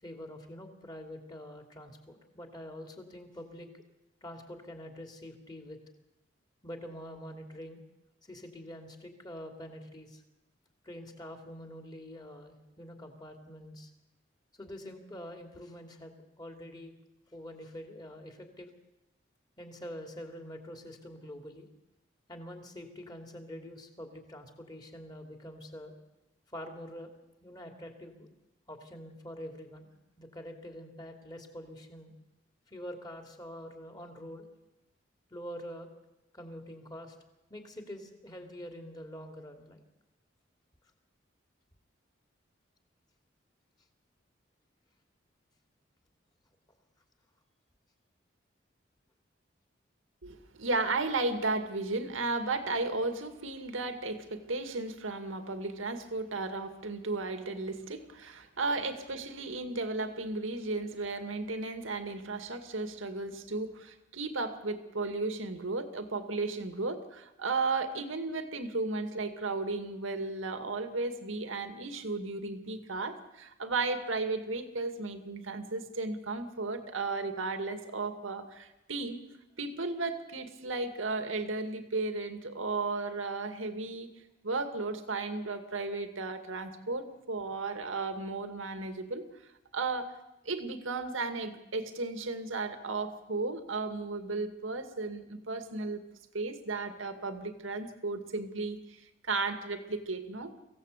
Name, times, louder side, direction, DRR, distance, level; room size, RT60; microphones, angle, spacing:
voice 1, 0.0-3.7 4.2-5.8 6.6-7.8 8.2-10.2 10.8-13.9 14.6-16.9 17.3-18.7 19.6-21.7 22.3-25.9 26.5-27.1 27.4-28.3 28.7-32.1 32.7-34.5 35.3-35.9 36.3-37.2 37.5-39.8, equal, 20° left, 4 dB, 2.7 m, -45 dB
voice 2, 50.2-79.2 79.6-84.1 84.4-90.2 90.5-96.0 96.3-100.5, right 3 dB, 90° right, 8 dB, 2.1 m, -34 dB
24.5 x 16.0 x 8.2 m, 0.96 s
head